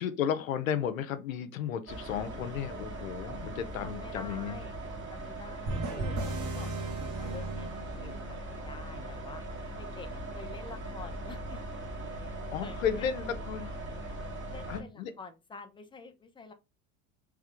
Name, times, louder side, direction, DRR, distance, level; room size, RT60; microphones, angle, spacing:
voice 1, 0.0-4.6 12.3-13.7 14.7-15.1, left 8 dB, 85° left, 0.6 m, -33 dB
sound 1, 1.9-14.8, right 2 dB, 30° right, 1.9 m, -40 dB
voice 2, 3.8-4.7 5.1-9.4 9.8-11.8 12.6-13.1 14.5-16.5, left 4 dB, 10° left, 0.7 m, -48 dB
sound 2, 5.7-8.5, right 2 dB, 45° right, 1.5 m, -36 dB
3.6 x 3.2 x 3.5 m
hypercardioid pair, 80°, 40 cm